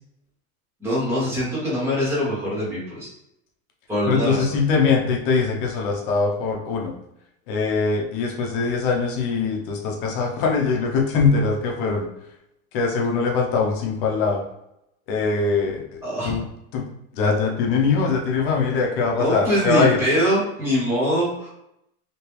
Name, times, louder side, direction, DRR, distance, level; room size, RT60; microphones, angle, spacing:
voice 1, 0.8-3.1 3.9-4.6 16.0-16.4 19.2-21.5, equal, 5° right, -7 dB, 0.4 m, -23 dB
voice 2, 4.1-6.9 7.5-12.1 12.7-14.4 15.1-16.4 16.7-16.8 17.2-20.0, left 4 dB, 35° left, 0 dB, 0.6 m, -22 dB
3.1 x 2.9 x 3.0 m, 0.81 s
supercardioid pair, 170°, 44 cm